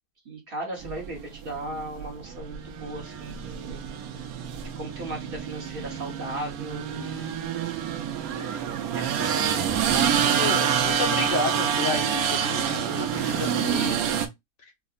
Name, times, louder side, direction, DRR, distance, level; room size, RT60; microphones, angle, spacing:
voice 1, 0.2-3.8 4.8-7.6 8.9-9.6, right 1 dB, 40° right, 1.1 m, -37 dB
sound 1, 0.8-14.3, right 8 dB, 75° right, 1.1 m, -27 dB
voice 2, 10.4-14.0 14.6-14.7, left 4 dB, 60° left, 1.1 m, -31 dB
4.7 x 2.1 x 2.3 m
omnidirectional pair, 1.6 m